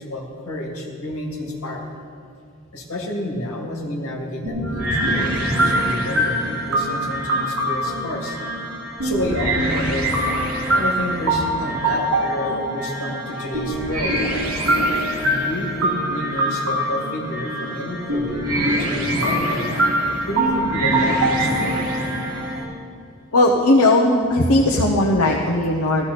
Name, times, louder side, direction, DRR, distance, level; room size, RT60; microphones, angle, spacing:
voice 1, 0.0-1.9 2.7-8.4 9.0-10.1 10.7-14.2 14.9-19.9 20.2-21.9, left 1 dB, 70° left, -1 dB, 2.3 m, -29 dB
sound 1, 4.5-22.6, right 1 dB, 80° right, 2.6 m, -23 dB
voice 2, 23.3-26.0, left 1 dB, 85° left, -2 dB, 1.0 m, -17 dB
14.5 x 13.5 x 4.2 m, 2.3 s
head